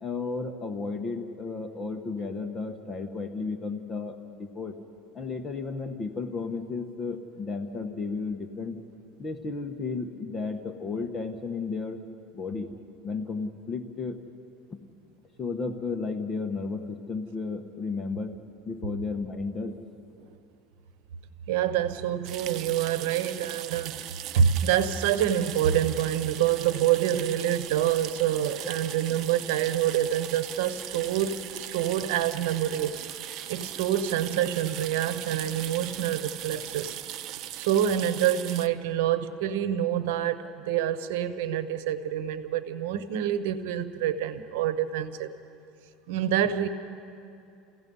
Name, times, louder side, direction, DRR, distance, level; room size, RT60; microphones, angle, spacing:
voice 1, 0.0-4.8 5.1-8.8 9.2-12.0 12.3-12.7 13.0-14.2 14.7-14.8 15.4-18.4 18.7-19.8 27.7-27.9, left 4 dB, 25° left, 7 dB, 1.1 m, -33 dB
voice 2, 21.5-24.0 24.3-31.4 31.7-33.0 33.5-36.9 37.6-45.3 46.1-46.7, right 10 dB, 80° right, 12 dB, 1.0 m, -26 dB
sound 1, 22.2-38.7, right 12 dB, 50° right, 0.7 m, -39 dB
sound 2, 25.9-38.1 38.3-38.4, right 2 dB, 20° right, 6.0 m, -53 dB
29.0 x 16.5 x 5.5 m, 2.6 s
supercardioid pair, 130°, 0 cm